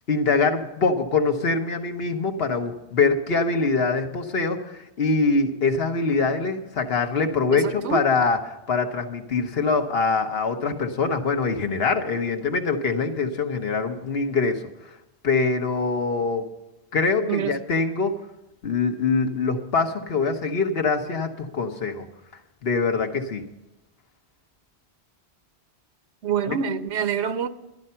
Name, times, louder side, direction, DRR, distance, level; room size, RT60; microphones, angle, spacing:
voice 1, 0.1-14.6 15.2-16.5 16.9-18.1 18.6-22.1 22.6-23.4 26.5-26.6, left 4 dB, 65° left, 6 dB, 1.4 m, -24 dB
voice 2, 7.5-8.0 17.2-17.6 26.2-27.5, right 8 dB, 85° right, 11 dB, 1.1 m, -26 dB
12.0 x 12.0 x 5.6 m, 0.93 s
omnidirectional pair, 1.1 m